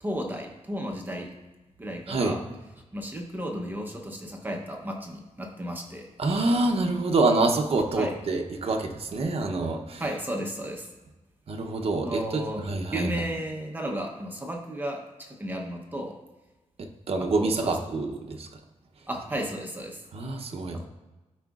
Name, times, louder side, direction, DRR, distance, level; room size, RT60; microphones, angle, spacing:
voice 1, 0.0-1.4 1.8-2.4 2.9-6.1 8.0-8.1 10.0-10.9 12.0-16.2 17.2-17.8 19.1-20.0 20.7-20.9, equal, 15° right, 1 dB, 0.8 m, -33 dB
voice 2, 6.2-10.0 11.5-13.1 16.8-18.5 20.1-20.8, right 2 dB, 50° right, 2 dB, 0.7 m, -26 dB
13.0 x 4.9 x 2.4 m, 1.1 s
wide cardioid pair, 170°, 12 cm